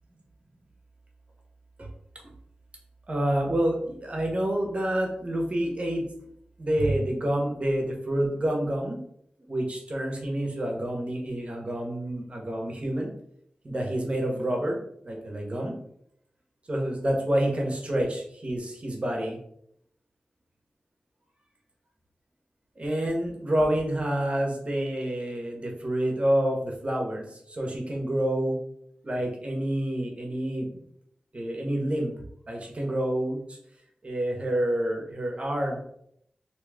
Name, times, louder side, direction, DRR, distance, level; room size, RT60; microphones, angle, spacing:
voice 1, 3.1-6.1 6.6-9.0 9.5-13.1 13.6-14.8 15.0-15.7 16.7-19.4 22.8-28.6 29.0-30.8 31.3-32.1 32.5-33.6 34.0-35.8, right 1 dB, 45° right, 0 dB, 1.0 m, -28 dB
3.0 x 2.8 x 3.5 m, 0.71 s
wide cardioid pair, 75°, 3 cm